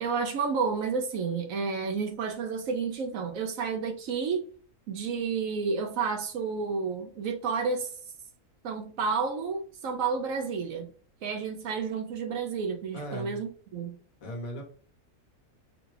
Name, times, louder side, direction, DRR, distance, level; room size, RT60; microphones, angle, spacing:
voice 1, 0.0-4.4 4.9-7.9 8.6-10.9 11.2-14.0, right 5 dB, 70° right, 0.9 m, -31 dB
voice 2, 12.9-13.4 14.2-14.6, right 1 dB, 65° left, 1.4 m, -37 dB
4.8 x 2.3 x 3.2 m
omnidirectional pair, 1.6 m